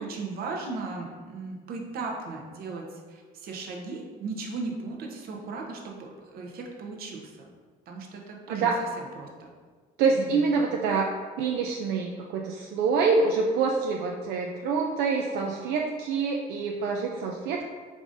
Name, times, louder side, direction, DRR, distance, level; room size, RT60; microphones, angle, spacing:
voice 1, 0.0-7.5 7.9-8.7 9.0-9.5 10.1-10.4, right 3 dB, 65° right, 1 dB, 0.8 m, -37 dB
voice 2, 10.0-11.1 11.4-17.7, right 4 dB, 85° right, 0 dB, 0.4 m, -26 dB
4.8 x 3.7 x 2.6 m, 1.5 s
cardioid pair, 110°, 17 cm